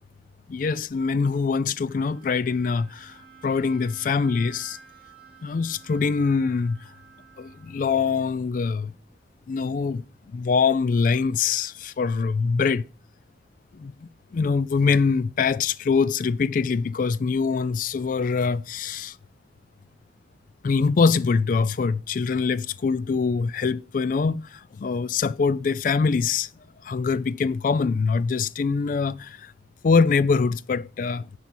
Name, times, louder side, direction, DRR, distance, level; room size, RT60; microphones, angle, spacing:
voice 1, 0.5-3.2 3.4-4.8 5.4-6.9 7.4-8.9 9.5-12.9 13.7-13.9 14.3-19.2 20.6-26.5 26.8-29.5 29.8-31.3, left 5 dB, 45° left, 0.3 m, -24 dB
Bowed string instrument, 1.9-8.3, right 6 dB, 10° right, 3.1 m, -51 dB
10.5 x 5.4 x 4.3 m
head